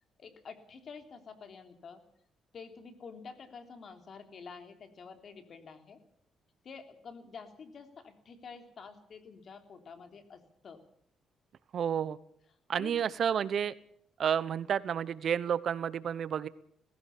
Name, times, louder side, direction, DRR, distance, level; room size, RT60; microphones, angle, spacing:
voice 1, 0.2-2.0 2.5-6.0 6.6-10.8 12.7-13.1 13.4-13.5 14.7-14.8, left 5 dB, 55° left, 7 dB, 3.2 m, -49 dB
voice 2, 11.7-12.2 12.7-13.7 14.2-16.5, right 8 dB, 60° right, 17 dB, 0.9 m, -30 dB
19.0 x 16.0 x 8.6 m, 0.68 s
cardioid pair, 90°, 0 cm